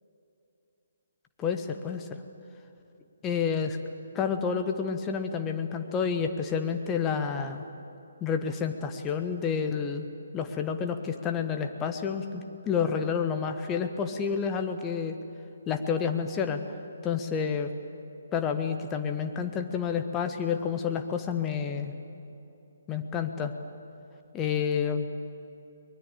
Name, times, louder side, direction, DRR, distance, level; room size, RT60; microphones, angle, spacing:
voice 1, 1.4-2.2 3.2-3.8 4.1-7.7 8.2-10.1 10.3-15.2 15.7-16.6 17.0-17.7 18.3-21.9 22.9-23.5 24.3-25.1, left 6 dB, 15° left, 6 dB, 1.3 m, -29 dB
23.0 x 21.0 x 8.8 m, 2.8 s
figure-of-eight pair, 135°, 0 cm